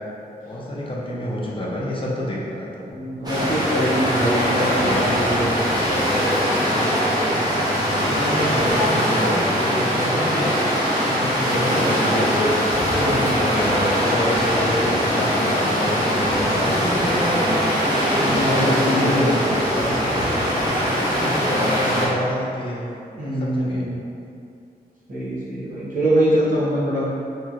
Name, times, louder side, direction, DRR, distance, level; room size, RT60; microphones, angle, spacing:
voice 1, 0.5-3.0 4.3-5.1 7.8-10.6 11.0-17.6 18.1-19.4 19.7-20.4 20.8-22.8 23.2-23.9, left 1 dB, 35° left, -5 dB, 0.5 m, -28 dB
voice 2, 2.9-6.5 12.9-13.4 18.1-19.5 20.8-20.9 23.1-24.0 25.1-27.1, equal, 55° right, -8 dB, 0.9 m, -24 dB
sound 1, 3.2-22.1, equal, 25° right, 0.8 m, -21 dB
2.9 x 2.8 x 2.4 m, 2.5 s
wide cardioid pair, 105°, 16 cm